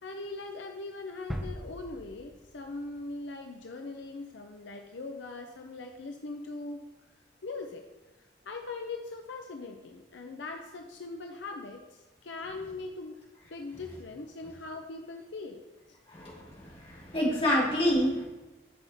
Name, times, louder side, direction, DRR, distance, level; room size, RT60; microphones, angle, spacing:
voice 1, 0.0-6.8 7.4-7.8 8.2-13.2 13.5-15.6, left 3 dB, 75° left, 3 dB, 0.7 m, -41 dB
sound 1, 1.3-3.2 3.6-3.7, equal, ahead, 0.6 m, -40 dB
voice 2, 16.1-18.2, equal, 30° left, -6 dB, 2.7 m, -28 dB
12.0 x 5.5 x 3.5 m, 1.1 s
head